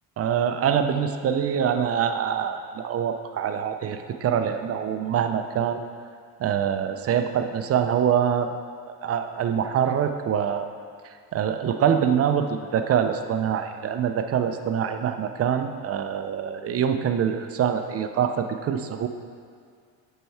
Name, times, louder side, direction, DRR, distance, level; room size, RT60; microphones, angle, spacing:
voice 1, 0.2-5.8 6.4-8.5 8.9-10.7 11.0-19.1, right 8 dB, 35° right, 8 dB, 0.4 m, -25 dB
7.6 x 4.5 x 3.4 m, 2.1 s
supercardioid pair, 80°, 45 cm